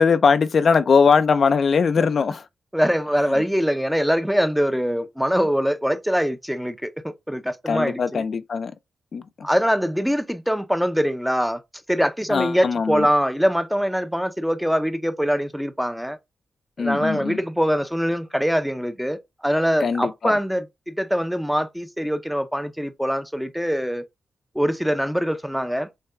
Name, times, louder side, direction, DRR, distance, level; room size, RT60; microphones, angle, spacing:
voice 1, 0.0-2.5 3.3-3.4 7.7-8.7 9.1-9.5 12.3-13.1 16.8-17.4 19.8-20.3, left 5 dB, 55° left, 0.4 m, -20 dB
voice 2, 2.7-8.2 9.4-11.6 11.9-16.2 16.8-24.0 24.5-25.9, equal, ahead, 0.5 m, -23 dB
6.5 x 2.3 x 3.4 m
wide cardioid pair, 125°, 0 cm